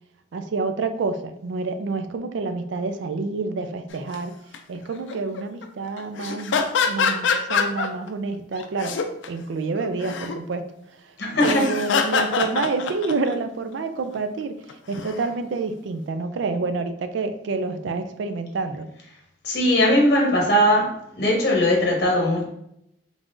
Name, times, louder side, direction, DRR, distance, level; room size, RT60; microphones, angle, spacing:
voice 1, 0.3-4.3 4.7-9.0 9.3-10.7 11.4-18.9, right 4 dB, 70° right, 9 dB, 0.4 m, -28 dB
sound 1, 3.9-4.1 4.5-4.8 5.1-5.6 6.0-8.1 8.6-9.3 9.7-10.4 11.3-13.3 14.7-15.3, left 5 dB, 75° left, 0.4 m, -25 dB
voice 2, 11.2-11.7 19.4-20.9 21.1-22.4, equal, 55° left, -1 dB, 0.8 m, -19 dB
3.6 x 3.4 x 2.5 m, 0.77 s
head